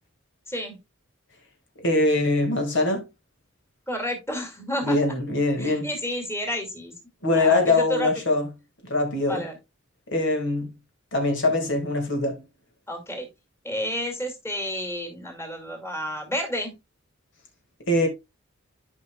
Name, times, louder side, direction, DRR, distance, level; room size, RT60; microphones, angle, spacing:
voice 1, 1.8-3.0 4.8-5.9 7.2-8.4 8.8-9.4 10.1-10.7 11.1-12.4 17.9-18.1, left 2 dB, 60° left, 2.1 m, -22 dB
voice 2, 3.9-5.0 5.6-6.9 7.3-8.1 9.3-9.6 12.9-13.3 13.6-16.7, equal, 15° left, 2.3 m, -30 dB
12.5 x 5.6 x 2.3 m
head